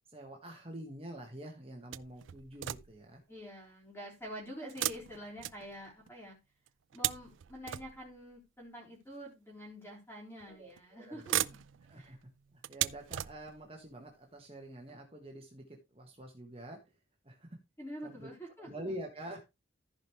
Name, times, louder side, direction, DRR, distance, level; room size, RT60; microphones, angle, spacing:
voice 1, 0.1-3.2 10.5-11.4 11.9-16.8 17.2-17.6 18.0-18.3 18.6-19.4, right 1 dB, 30° right, 1 dB, 1.6 m, -47 dB
sound 1, 1.9-3.2 4.7-6.1 6.7-8.3 9.2-9.3 10.4-10.8 11.1-13.8 14.5-14.6 14.9-15.0, right 13 dB, 70° right, 0.4 m, -38 dB
voice 2, 3.3-6.4 6.9-11.6 11.9-12.1 17.8-19.0, equal, 10° left, -3 dB, 3.6 m, -47 dB
14.5 x 5.2 x 3.2 m, 0.24 s
head